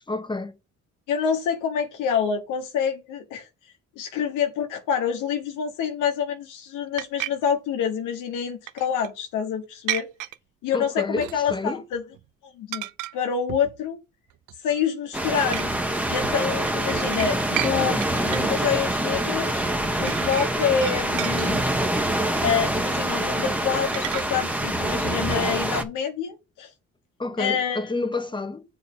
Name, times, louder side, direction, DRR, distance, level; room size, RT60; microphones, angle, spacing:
voice 1, 0.1-0.5 10.7-11.8 27.2-28.6, left 3 dB, 15° left, 1.3 m, -29 dB
voice 2, 1.1-10.1 10.6-12.0 12.4-12.9 13.1-14.0 14.6-15.7 16.1-19.6 20.0-21.6 22.4-26.7 27.4-27.9, left 7 dB, 90° left, 1.2 m, -27 dB
sound 1, 7.0-7.3 8.7-9.1 9.9-10.4 11.2-11.7 11.9-12.2 12.7-13.1 13.5-13.8 14.3-14.8 15.5-15.7 16.2-17.7 18.0-18.5 19.6-19.7 20.1-21.9 23.9-24.2, right 15 dB, 90° right, 0.6 m, -33 dB
sound 2, 15.1-25.8, right 1 dB, 5° right, 1.3 m, -25 dB
7.3 x 4.4 x 5.5 m
cardioid pair, 90°, 30 cm